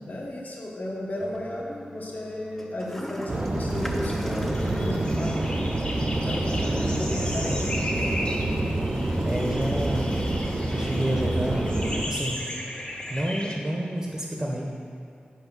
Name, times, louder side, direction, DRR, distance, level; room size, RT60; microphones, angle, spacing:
voice 1, 0.0-5.5 5.9-8.1, left 1 dB, 60° left, -3 dB, 1.3 m, -34 dB
Toilet flush, 1.2-13.2, equal, 5° left, 0.6 m, -44 dB
sound 1, 3.3-12.1, right 1 dB, 45° right, 0.7 m, -27 dB
sound 2, 4.5-13.5, equal, 30° left, 1.1 m, -36 dB
voice 2, 8.9-10.3 10.6-11.6 12.1-12.4 13.1-14.6, right 1 dB, 25° right, -1 dB, 1.0 m, -29 dB
5.9 x 4.8 x 6.1 m, 2.6 s
wide cardioid pair, 60°, 3 cm